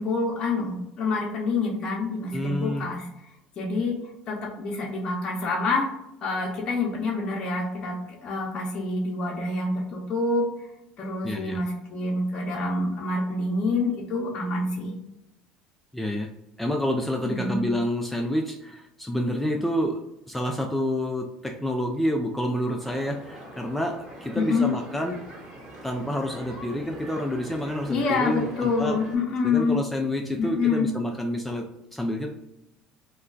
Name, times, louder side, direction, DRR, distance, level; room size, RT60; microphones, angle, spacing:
voice 1, 0.0-3.1 3.6-4.0 4.3-5.9 6.2-10.5 11.0-14.9 17.2-17.6 24.4-24.7 27.9-29.8 30.4-30.9, left 3 dB, 40° left, -3 dB, 0.6 m, -27 dB
voice 2, 2.3-2.9 11.2-11.6 15.9-16.3 16.6-20.0 20.3-25.2 25.8-29.0 29.4-32.3, equal, 5° left, 2 dB, 0.3 m, -28 dB
sound 1, 22.8-29.2, right 1 dB, 35° right, 1.2 m, -42 dB
2.3 x 2.2 x 3.7 m, 0.86 s
supercardioid pair, 110°, 2 cm